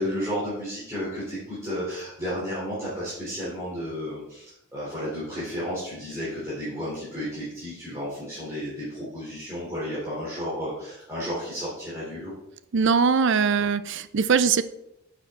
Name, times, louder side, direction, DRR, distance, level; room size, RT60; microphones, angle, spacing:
voice 1, 0.0-12.3, equal, 15° right, -10 dB, 3.2 m, -32 dB
voice 2, 12.7-14.6, right 5 dB, 55° right, 14 dB, 0.5 m, -21 dB
9.9 x 6.8 x 3.7 m, 0.82 s
head